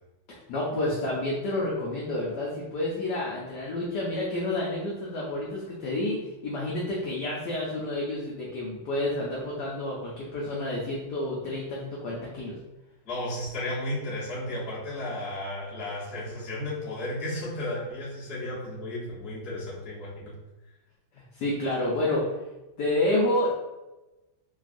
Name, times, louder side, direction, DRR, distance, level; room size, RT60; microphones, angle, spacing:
voice 1, 0.3-12.6 21.1-22.3 22.8-23.5, left 1 dB, 75° left, -4 dB, 1.0 m, -29 dB
voice 2, 13.0-20.3, left 1 dB, 45° left, -8 dB, 0.9 m, -34 dB
3.4 x 2.3 x 2.4 m, 1.0 s
omnidirectional pair, 2.3 m